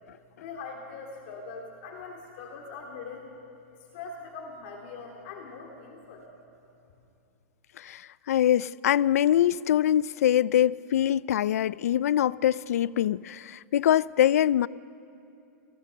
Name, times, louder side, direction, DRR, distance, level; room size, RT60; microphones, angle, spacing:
voice 1, 0.3-3.3 3.7-6.3, left 4 dB, 50° left, 2.5 m, -42 dB
voice 2, 8.3-14.7, left 11 dB, 80° left, 0.4 m, -23 dB
29.5 x 19.0 x 6.7 m
supercardioid pair, 165°, 8 cm